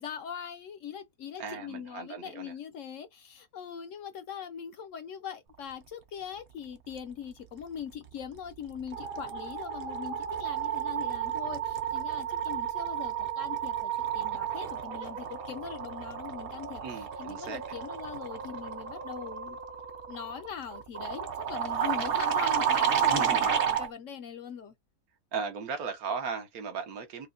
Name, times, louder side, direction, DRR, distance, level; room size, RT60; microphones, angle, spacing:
voice 1, 0.0-16.8 17.2-19.6 20.1-24.7, left 8 dB, 65° left, 0.8 m, -41 dB
voice 2, 1.4-2.5 16.8-17.7 23.0-23.5 25.3-27.3, right 5 dB, 70° right, 1.4 m, -37 dB
sound 1, 8.1-8.4 8.6-23.9, right 8 dB, 55° right, 0.7 m, -32 dB
4.9 x 2.2 x 2.5 m
omnidirectional pair, 1.6 m